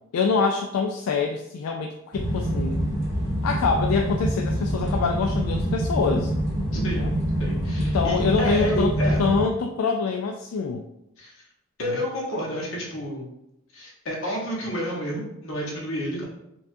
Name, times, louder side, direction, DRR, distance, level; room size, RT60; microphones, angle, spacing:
voice 1, 0.1-2.8 3.4-6.3 7.0-7.1 7.8-8.9 9.2-10.8 11.8-12.0, left 4 dB, 85° left, 3 dB, 0.3 m, -25 dB
sound 1, 2.1-9.4, right 1 dB, 35° left, 1.3 m, -26 dB
voice 2, 6.7-7.1 7.4-9.2 11.2-11.3 11.8-13.3 13.7-16.2, equal, 70° left, -3 dB, 1.1 m, -30 dB
4.6 x 2.4 x 2.6 m, 0.83 s
head